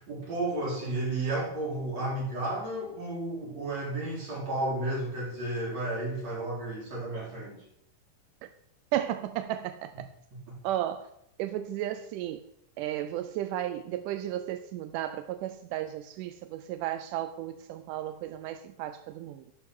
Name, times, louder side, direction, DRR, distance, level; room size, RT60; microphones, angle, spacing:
voice 1, 0.0-7.6, right 2 dB, 50° right, 5.2 m, -32 dB
voice 2, 8.9-10.1 10.6-11.1 11.4-12.5 12.8-19.5, right 12 dB, 80° right, 2.0 m, -34 dB
12.0 x 5.9 x 6.2 m
omnidirectional pair, 4.0 m